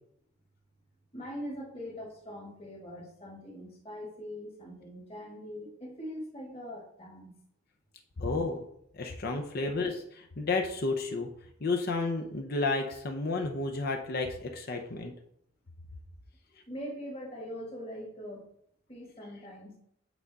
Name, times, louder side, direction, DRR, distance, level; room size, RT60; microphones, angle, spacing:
voice 1, 1.1-7.3 16.7-18.5 18.9-19.8, equal, 30° left, -3 dB, 1.6 m, -42 dB
voice 2, 8.2-8.7 8.9-11.3 11.6-15.1, left 3 dB, 50° left, 3 dB, 0.7 m, -31 dB
8.2 x 3.6 x 4.0 m, 0.72 s
head